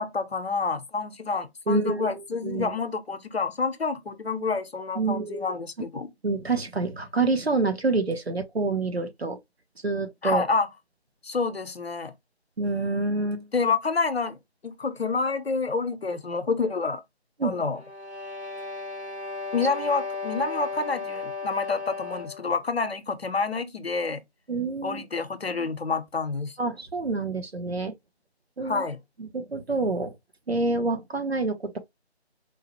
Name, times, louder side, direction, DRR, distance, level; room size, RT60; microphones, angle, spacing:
voice 1, 0.0-6.1 10.2-10.7 11.2-12.1 13.5-14.4 14.6-17.0 17.4-17.8 19.5-24.2 24.8-26.6 28.6-29.0, left 4 dB, 65° left, 0.7 m, -28 dB
voice 2, 1.7-2.1 2.4-2.7 5.0-5.5 6.2-9.4 9.8-10.4 12.6-13.5 17.4-17.6 24.5-25.0 26.6-27.9 28.6-28.9 29.2-30.1 30.5-31.8, right 3 dB, 65° right, 1.1 m, -27 dB
sound 1, 17.7-22.5, left 4 dB, 80° right, 2.2 m, -35 dB
4.6 x 2.2 x 2.9 m
figure-of-eight pair, 160°, 33 cm